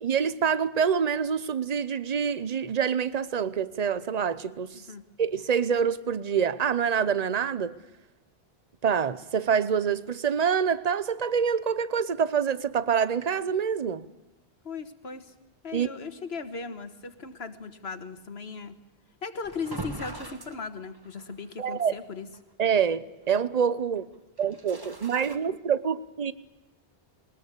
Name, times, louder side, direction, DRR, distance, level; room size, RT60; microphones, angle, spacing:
voice 1, 0.0-4.8 5.2-7.8 8.8-14.1 15.7-15.9 21.6-21.9 22.6-24.0 24.4-26.3, right 7 dB, 40° right, 0.9 m, -26 dB
voice 2, 14.6-15.3 15.6-18.7 19.2-22.3, left 4 dB, 85° left, 1.8 m, -37 dB
sound 1, 19.4-21.4 21.8-21.9 22.3-22.4 24.4-25.4, right 2 dB, 20° right, 1.5 m, -40 dB
20.5 x 20.0 x 8.4 m
omnidirectional pair, 1.0 m